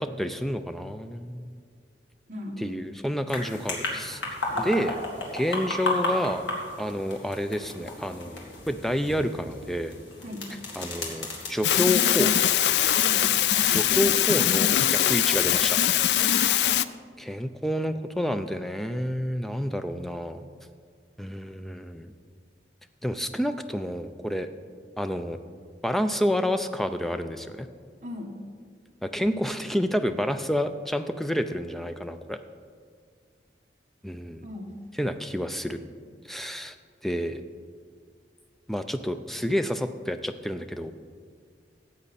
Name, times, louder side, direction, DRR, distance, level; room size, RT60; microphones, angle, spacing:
voice 1, 0.0-1.5 2.6-4.2 4.6-5.0 5.3-6.4 6.8-9.9 10.8-12.3 13.7-15.8 17.2-20.4 21.2-22.1 23.0-24.5 25.0-25.4 25.8-27.7 29.0-32.4 34.0-34.5 35.0-35.8 36.3-36.7 37.0-37.4 38.7-40.9, equal, ahead, 9 dB, 0.4 m, -29 dB
voice 2, 2.3-2.7 4.5-4.7 10.2-10.5 13.0-13.3 16.1-16.4 28.0-28.4 34.4-34.7, left 1 dB, 40° right, 0 dB, 1.3 m, -38 dB
sound 1, 3.3-13.9, left 2 dB, 90° left, 2.1 m, -34 dB
sound 2, 11.6-16.9, left 11 dB, 70° left, 0.3 m, -22 dB
14.0 x 8.1 x 4.2 m, 2.1 s
head